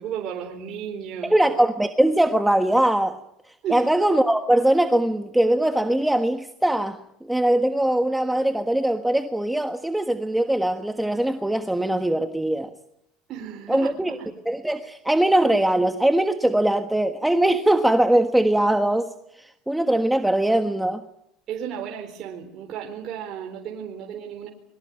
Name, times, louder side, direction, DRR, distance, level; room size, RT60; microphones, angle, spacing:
voice 1, 0.0-1.4 3.6-3.9 13.3-14.3 21.5-24.5, right 8 dB, 50° right, 4.3 m, -34 dB
voice 2, 1.2-3.2 3.7-12.7 13.7-14.1 14.4-21.0, right 1 dB, 5° right, 1.4 m, -21 dB
25.5 x 23.0 x 8.9 m
supercardioid pair, 115°, 0 cm